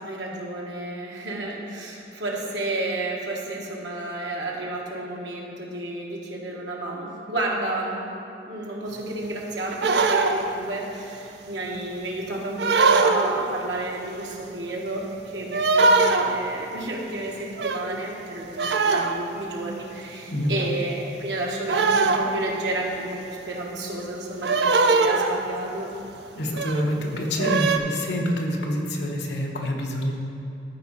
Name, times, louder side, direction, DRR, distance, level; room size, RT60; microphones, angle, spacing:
voice 1, 0.0-8.1 8.5-15.0 15.3-25.9, right 2 dB, 90° right, -2 dB, 1.5 m, -31 dB
sound 1, 9.7-10.6 12.6-13.5 15.5-16.4 17.6-18.0 18.6-19.3 20.6-20.7 21.7-22.6 24.4-25.5 26.5-26.9 27.4-27.8, right 3 dB, 70° right, 0.5 m, -21 dB
voice 2, 26.3-30.1, left 1 dB, 75° left, 0 dB, 1.1 m, -26 dB
13.5 x 4.9 x 4.1 m, 2.7 s
head